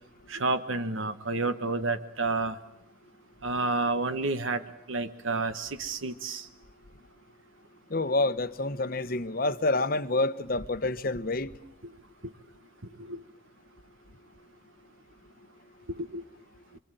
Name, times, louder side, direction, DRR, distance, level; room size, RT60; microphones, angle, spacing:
voice 1, 0.3-2.6 3.4-4.6 4.9-6.5 13.1-13.2 16.0-16.2, right 3 dB, 75° right, 1.4 m, -30 dB
voice 2, 7.9-11.5, left 2 dB, 45° left, 1.0 m, -28 dB
26.5 x 24.5 x 9.1 m
head